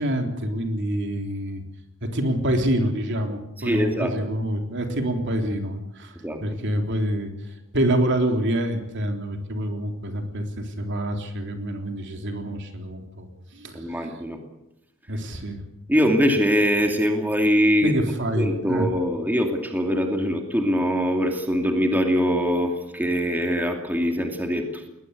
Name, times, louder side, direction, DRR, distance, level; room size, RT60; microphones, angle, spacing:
voice 1, 0.0-1.6 2.1-6.2 6.4-14.0 15.1-15.6 17.8-18.9, right 1 dB, 55° right, 4 dB, 3.5 m, -26 dB
voice 2, 3.6-4.2 6.2-6.4 13.7-14.4 15.9-17.9 18.4-24.8, equal, 10° right, 3 dB, 2.5 m, -22 dB
21.0 x 20.0 x 8.2 m, 0.86 s
head